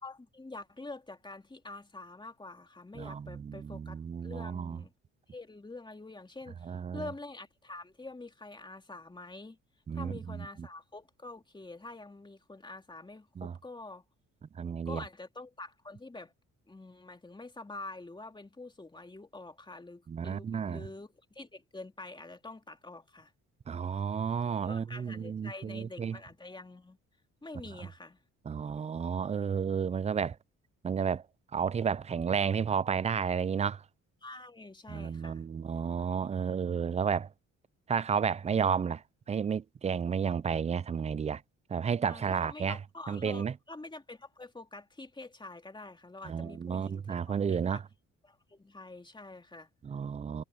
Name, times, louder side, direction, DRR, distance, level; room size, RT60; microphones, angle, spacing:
voice 1, 0.0-4.9 5.3-9.6 9.9-14.0 14.9-16.3 16.7-23.3 24.6-27.0 27.4-28.2 34.2-35.5 42.1-47.8 48.2-49.7, left 2 dB, 15° left, 2.7 m, -46 dB
voice 2, 2.9-4.8 6.6-7.1 9.9-10.5 13.4-13.5 14.6-15.0 20.1-20.9 23.7-26.2 28.5-30.4 30.8-31.2 31.5-33.8 34.9-37.3 37.9-39.0 39.3-41.4 41.7-42.8 43.1-43.5 46.2-47.8 49.8-50.4, right 7 dB, 25° right, 0.3 m, -32 dB
cardioid pair, 90°, 30 cm